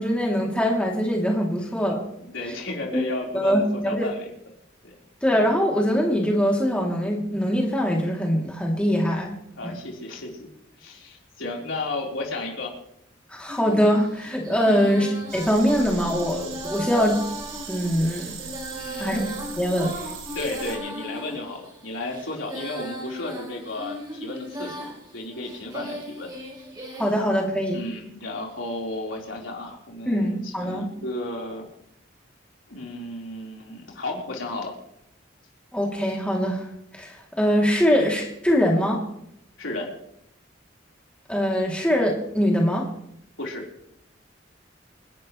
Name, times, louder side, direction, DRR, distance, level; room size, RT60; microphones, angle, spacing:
voice 1, 0.0-2.0 2.9-3.0 3.3-4.1 5.2-9.3 9.6-9.7 13.3-17.2 17.7-18.3 19.0-19.2 19.6-19.9 27.0-27.8 30.1-30.9 35.7-36.7 36.9-39.0 41.3-42.9, equal, 5° left, -2 dB, 3.0 m, -23 dB
voice 2, 1.6-1.9 2.2-4.3 4.8-5.0 9.6-10.5 10.7-12.7 14.6-14.9 18.7-19.4 20.3-26.3 27.7-31.7 32.7-34.7 39.6-39.9 43.4-43.6, left 2 dB, 90° left, -2 dB, 4.5 m, -33 dB
Female singing, 13.5-27.1, equal, 20° right, 5.6 m, -37 dB
sound 1, 15.3-20.8, right 5 dB, 85° right, 3.1 m, -39 dB
28.5 x 11.5 x 3.3 m, 0.78 s
head